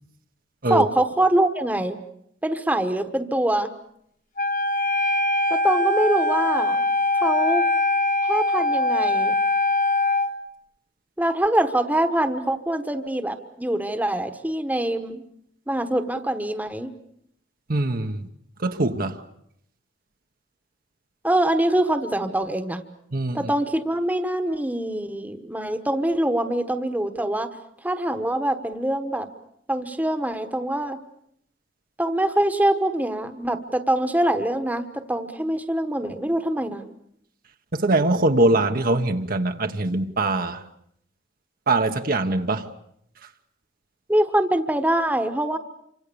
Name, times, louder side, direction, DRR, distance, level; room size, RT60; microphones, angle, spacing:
voice 1, 0.7-2.0 2.4-3.7 5.5-6.8 7.2-7.6 8.2-9.3 11.2-15.2 15.7-16.9 21.2-22.8 23.3-27.5 27.8-29.3 29.7-31.0 32.0-36.8 44.1-45.6, right 1 dB, 10° right, 1.3 m, -24 dB
Wind instrument woodwind instrument, 4.4-10.3, left 2 dB, 45° left, 1.4 m, -22 dB
voice 2, 17.7-18.3 18.6-19.2 23.1-23.5 37.7-40.6 41.7-42.7 43.2-43.3, right 2 dB, 50° right, 1.2 m, -22 dB
28.0 x 25.5 x 7.0 m
head